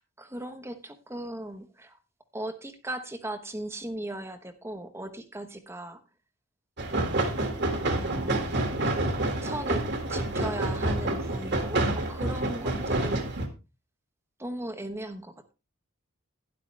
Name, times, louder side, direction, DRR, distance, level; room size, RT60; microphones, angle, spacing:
voice 1, 0.0-2.0 2.3-6.0 7.8-8.6 9.4-13.3 14.4-15.3, right 1 dB, 10° right, 8 dB, 1.0 m, -38 dB
sound 1, 6.8-13.5, right 2 dB, 50° right, 1.8 m, -28 dB
12.0 x 10.5 x 3.3 m, 0.29 s
head